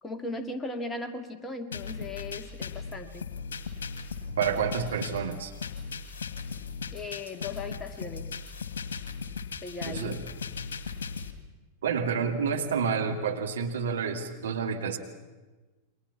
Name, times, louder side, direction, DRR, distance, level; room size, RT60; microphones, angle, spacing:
voice 1, 0.0-3.3 6.9-8.4 9.6-10.1, left 2 dB, 15° left, 6 dB, 2.2 m, -37 dB
sound 1, 1.7-11.3, left 5 dB, 65° left, 2.2 m, -38 dB
voice 2, 4.4-5.5 9.8-10.2 11.8-15.0, right 6 dB, 65° right, 3 dB, 2.4 m, -29 dB
29.5 x 23.5 x 6.0 m, 1.2 s
figure-of-eight pair, 90°, 0 cm